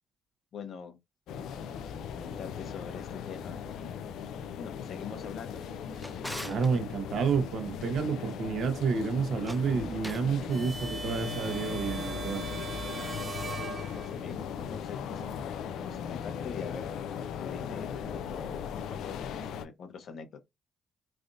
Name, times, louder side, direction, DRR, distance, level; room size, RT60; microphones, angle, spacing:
voice 1, 0.5-1.0 1.4-1.5 2.1-3.9 4.6-5.6 13.7-16.9 17.4-19.2 19.5-20.4, left 6 dB, 65° left, 0.9 m, -44 dB
sound 1, 1.3-19.6, left 7 dB, 80° left, 0.4 m, -38 dB
Drawer open or close, 5.5-6.7 9.3-10.3, equal, ahead, 0.5 m, -43 dB
voice 2, 6.4-12.4, right 5 dB, 65° right, 0.9 m, -30 dB
sound 2, 10.5-14.4, right 3 dB, 35° right, 1.2 m, -40 dB
3.3 x 2.5 x 2.6 m
cardioid pair, 90°, 0 cm